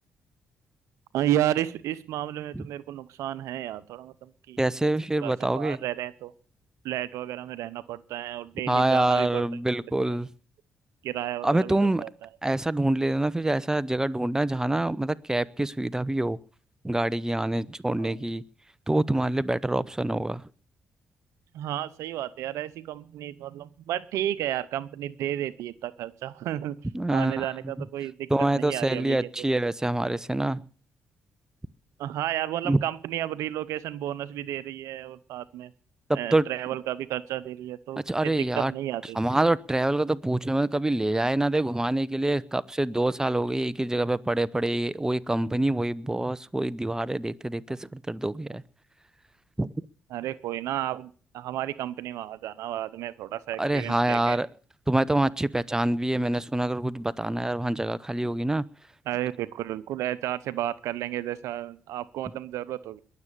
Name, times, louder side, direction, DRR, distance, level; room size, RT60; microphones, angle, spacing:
voice 1, 1.1-4.6 5.2-6.3 6.8-9.4 10.1-10.2 11.0-12.3 18.0-18.2 21.5-26.8 27.1-29.3 32.0-35.7 36.1-39.2 50.1-54.4 59.1-63.0, right 13 dB, 80° right, 0.8 m, -32 dB
voice 2, 4.6-5.8 8.7-10.3 11.4-12.0 12.4-16.4 16.8-18.4 18.9-20.4 26.9-27.5 28.3-30.6 32.6-32.8 36.1-36.5 38.1-38.7 39.1-48.6 49.6-49.7 53.6-54.5 54.9-58.6, right 1 dB, 10° right, 0.8 m, -26 dB
22.0 x 7.6 x 6.8 m
supercardioid pair, 55°, 5 cm